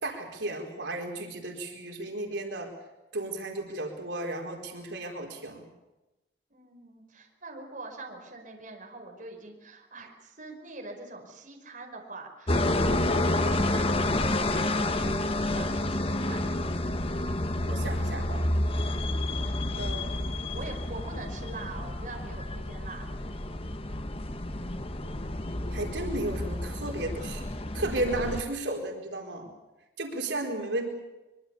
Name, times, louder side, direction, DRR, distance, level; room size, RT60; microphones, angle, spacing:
voice 1, 0.0-2.7 3.1-5.6 17.7-18.5 19.7-20.4 25.7-27.4 27.7-29.5 30.0-30.9, right 2 dB, 85° right, 2 dB, 4.5 m, -34 dB
voice 2, 6.5-16.5 19.6-19.9 20.5-23.1, right 2 dB, 45° right, 1 dB, 5.3 m, -44 dB
sound 1, 12.5-28.4, left 1 dB, 30° left, 1.3 m, -29 dB
24.5 x 23.5 x 7.1 m, 1.0 s
head